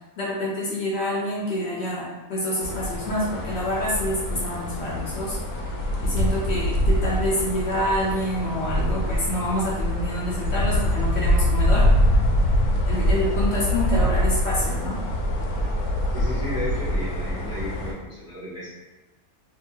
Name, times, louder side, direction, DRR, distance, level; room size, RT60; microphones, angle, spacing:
voice 1, 0.2-5.4 6.0-11.9 12.9-15.0, left 1 dB, 60° left, -5 dB, 0.8 m, -27 dB
sound 1, 2.6-17.9, equal, 85° left, 1.1 m, -24 dB
voice 2, 16.1-18.7, equal, 20° right, -8 dB, 0.4 m, -33 dB
2.7 x 2.6 x 2.7 m, 1.1 s
omnidirectional pair, 1.5 m